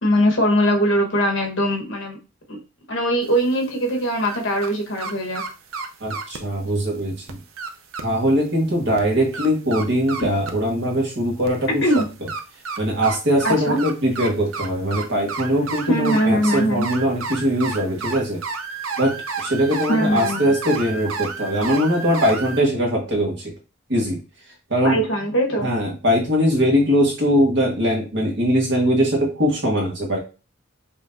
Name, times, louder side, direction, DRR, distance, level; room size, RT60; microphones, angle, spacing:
voice 1, 0.0-2.2 2.5-2.6 2.9-5.4 11.8-12.1 13.4-13.8 15.9-16.9 19.9-20.5 24.8-25.7, equal, 60° left, 1 dB, 1.3 m, -21 dB
sound 1, 3.2-4.7 5.0-6.4 6.9-7.0 7.3-8.0 8.5-8.6 9.0-10.7 11.4-22.6, right 5 dB, 80° right, 0.6 m, -31 dB
voice 2, 6.0-7.4 8.0-11.8 12.8-18.4 19.0-23.5 23.9-24.2 24.7-25.0 25.6-30.2, equal, 55° right, 0 dB, 1.5 m, -21 dB
5.5 x 3.1 x 2.6 m, 0.31 s
head